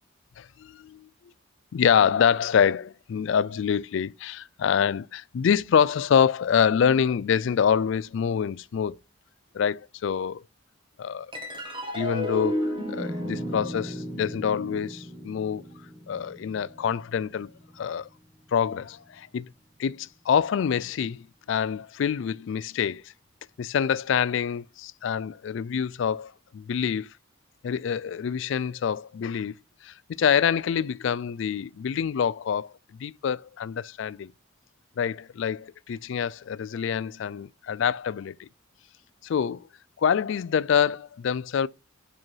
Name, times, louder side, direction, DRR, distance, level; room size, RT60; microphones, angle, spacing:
voice 1, 0.4-1.1 1.7-9.0 9.5-10.4 11.0-11.3 11.9-15.6 16.1-17.5 17.8-18.1 18.5-19.5 19.8-23.1 23.6-27.1 27.6-29.5 29.8-34.3 35.0-38.5 39.2-39.7 40.0-41.7, left 7 dB, 60° left, 0.3 m, -26 dB
sound 1, 11.3-18.0, equal, 25° right, 1.5 m, -34 dB
5.6 x 5.2 x 4.6 m
head